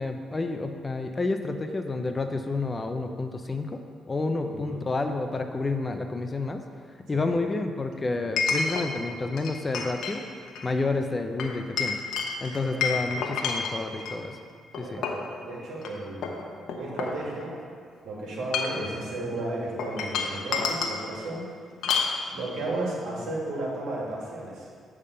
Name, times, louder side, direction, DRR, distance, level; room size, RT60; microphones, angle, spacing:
voice 1, 0.0-3.8 4.1-6.6 7.1-10.2 10.6-12.0 12.4-14.4 14.8-15.0, left 3 dB, 25° left, 6 dB, 0.6 m, -29 dB
voice 2, 4.4-4.8 7.1-7.4 12.6-13.0 14.8-16.3 16.8-17.5 18.0-21.5 22.3-24.7, right 2 dB, 80° right, -3 dB, 1.9 m, -34 dB
Chink clink, 4.9-5.0 8.4-8.9 9.4-10.2 10.5-10.7 11.4-14.2 14.7-15.3 15.8-15.9 16.2-17.6 18.3-18.9 19.8-21.0 21.8-22.2, left 5 dB, 80° left, 0.9 m, -29 dB
8.4 x 3.6 x 6.6 m, 2.1 s
cardioid pair, 90°, 0 cm